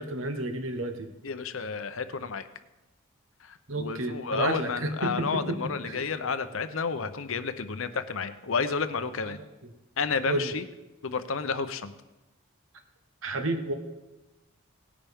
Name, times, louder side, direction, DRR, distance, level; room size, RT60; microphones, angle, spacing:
voice 1, 0.0-1.1 3.7-5.6 5.8-6.0 10.2-10.5 13.2-13.7, right 1 dB, 75° right, 6 dB, 1.3 m, -31 dB
voice 2, 1.2-2.5 3.4-9.4 10.0-10.6 11.0-11.9, left 5 dB, 75° left, 11 dB, 0.7 m, -31 dB
18.0 x 10.0 x 3.6 m, 1.1 s
head